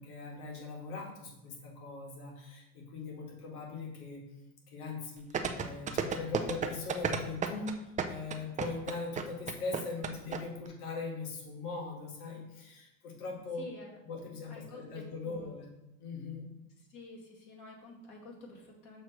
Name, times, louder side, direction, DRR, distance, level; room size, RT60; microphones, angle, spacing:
voice 1, 0.0-4.2 4.7-13.6 14.0-15.7 16.0-16.5, left 4 dB, 85° left, -1 dB, 2.0 m, -40 dB
sound 1, 5.3-10.4 10.7-10.8, right 7 dB, 20° right, 0.4 m, -32 dB
voice 2, 13.6-14.0 14.5-15.6 16.8-19.0, left 2 dB, 45° left, -2 dB, 2.1 m, -50 dB
6.3 x 3.2 x 5.8 m, 0.92 s
supercardioid pair, 105°, 44 cm